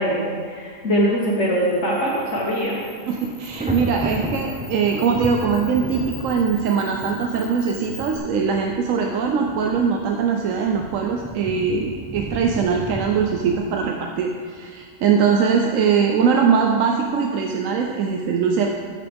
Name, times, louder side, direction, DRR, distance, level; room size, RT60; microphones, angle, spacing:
voice 1, 0.0-2.8, equal, 60° left, -5 dB, 1.5 m, -22 dB
Camera, 1.2-8.2, left 4 dB, 85° left, 1.9 m, -44 dB
Thunder, 2.1-2.4 2.7-13.6, equal, 5° right, 0.6 m, -34 dB
voice 2, 3.1-18.7, right 6 dB, 85° right, 2 dB, 1.0 m, -21 dB
13.5 x 6.2 x 3.5 m, 2.1 s
omnidirectional pair, 1.4 m